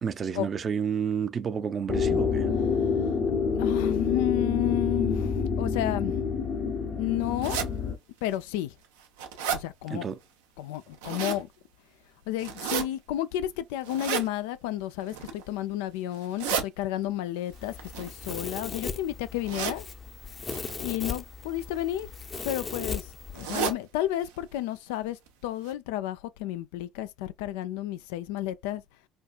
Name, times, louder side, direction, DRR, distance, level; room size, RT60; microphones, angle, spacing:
voice 1, 0.0-2.5 9.9-10.2, right 7 dB, 45° right, 0.5 m, -30 dB
sound 1, 1.9-8.0, left 5 dB, 60° left, 1.0 m, -27 dB
voice 2, 3.5-6.2 6.9-7.6 8.2-8.7 9.5-10.1 10.6-11.5 12.3-19.9 20.8-22.1 22.4-23.1 23.3-28.8, left 13 dB, 85° left, 0.3 m, -31 dB
sound 2, 7.4-7.7 8.3-8.4 8.8-9.6 10.7-11.4 12.4-12.8 13.8-14.3 15.0-15.4 16.1-16.6 17.8-18.8 19.4-19.8 20.5-20.7 21.7-22.0 22.3-22.4 22.7-22.8 23.3-23.8 24.2-24.3 24.6-24.7 25.3-25.4 25.7-25.8, right 7 dB, 90° right, 0.7 m, -32 dB
Domestic sounds home sounds, 17.5-23.7, left 5 dB, 35° left, 0.7 m, -38 dB
4.4 x 2.4 x 2.3 m
hypercardioid pair, 70°, 0 cm